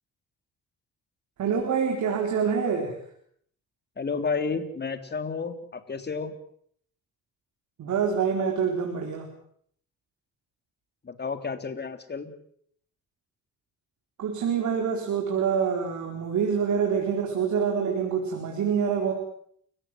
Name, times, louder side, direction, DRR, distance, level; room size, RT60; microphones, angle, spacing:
voice 1, 1.4-3.0 7.8-9.3 14.2-19.1, right 6 dB, 70° right, 2 dB, 4.4 m, -26 dB
voice 2, 4.0-6.3 11.0-12.3, left 5 dB, 35° left, 8 dB, 3.4 m, -31 dB
29.5 x 16.5 x 7.8 m, 0.65 s
cardioid pair, 90°, 30 cm